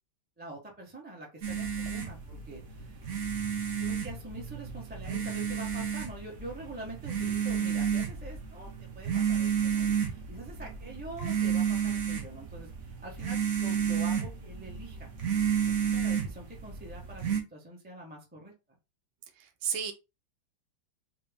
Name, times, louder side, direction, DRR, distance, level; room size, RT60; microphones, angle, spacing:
voice 1, 0.4-3.0 3.7-15.1 15.8-18.5, right 2 dB, 10° right, 0.4 m, -45 dB
sound 1, 1.4-17.4, right 7 dB, 60° right, 0.8 m, -31 dB
voice 2, 19.4-19.9, right 7 dB, 85° right, 1.5 m, -33 dB
4.0 x 2.2 x 3.5 m
omnidirectional pair, 2.2 m